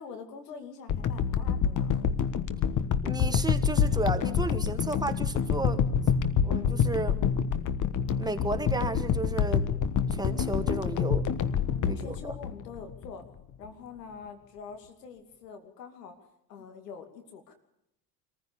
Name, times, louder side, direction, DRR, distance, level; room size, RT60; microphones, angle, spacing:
voice 1, 0.0-2.0 11.6-13.2 13.6-17.5, left 5 dB, 80° left, 6 dB, 2.7 m, -45 dB
sound 1, 0.9-13.1 13.6-13.7, left 7 dB, 40° left, 1.4 m, -27 dB
voice 2, 3.0-5.8 6.4-7.2 8.2-9.8 10.1-11.3 11.8-12.3, right 2 dB, 10° right, 7 dB, 1.9 m, -33 dB
25.5 x 15.0 x 7.0 m, 0.81 s
hypercardioid pair, 75°, 48 cm